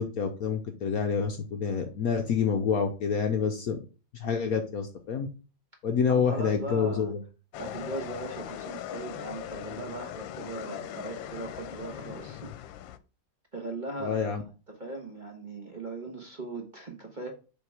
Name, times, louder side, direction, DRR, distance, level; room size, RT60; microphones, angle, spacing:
voice 1, 0.0-3.8 4.1-5.3 5.8-7.2 14.0-14.4, left 6 dB, 60° left, 1.0 m, -27 dB
voice 2, 6.1-7.1 7.6-12.5 13.5-14.4 14.7-17.3, right 2 dB, 30° right, 1.2 m, -39 dB
sound 1, 7.5-13.0, left 10 dB, 85° left, 1.3 m, -40 dB
6.8 x 3.6 x 4.7 m
omnidirectional pair, 2.0 m